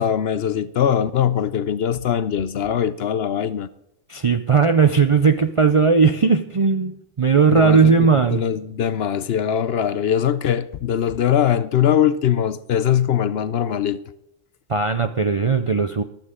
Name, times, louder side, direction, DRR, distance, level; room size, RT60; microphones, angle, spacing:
voice 1, 0.0-3.7 7.5-14.0, left 9 dB, 60° left, 0.7 m, -21 dB
voice 2, 4.1-8.4 14.7-16.0, right 5 dB, 45° right, 0.4 m, -17 dB
14.5 x 12.0 x 3.7 m
omnidirectional pair, 1.3 m